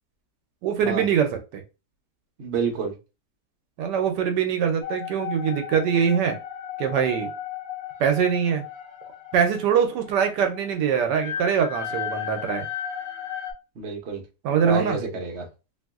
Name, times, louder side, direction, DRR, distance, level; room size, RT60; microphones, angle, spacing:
voice 1, 0.6-1.6 3.8-6.4 6.8-7.3 8.0-8.6 9.3-12.7 14.4-15.0, right 7 dB, 80° right, 6 dB, 1.2 m, -23 dB
voice 2, 2.4-2.9 13.8-14.2 14.6-15.5, right 5 dB, 50° right, 0 dB, 0.9 m, -28 dB
sound 1, 4.8-13.5, left 8 dB, 60° left, 0.8 m, -35 dB
3.0 x 2.6 x 2.3 m, 0.29 s
omnidirectional pair, 1.8 m